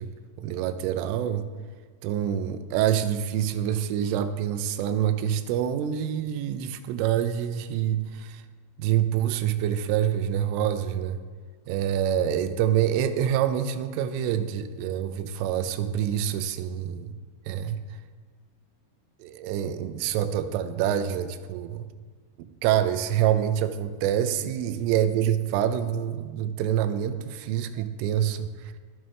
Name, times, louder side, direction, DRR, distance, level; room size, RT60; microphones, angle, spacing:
voice 1, 0.0-1.5 2.0-8.4 8.8-11.2 11.7-17.2 17.5-17.8 19.2-21.9 22.4-28.7, right 10 dB, 85° right, 10 dB, 3.2 m, -26 dB
18.5 x 7.2 x 3.3 m, 1.5 s
omnidirectional pair, 5.7 m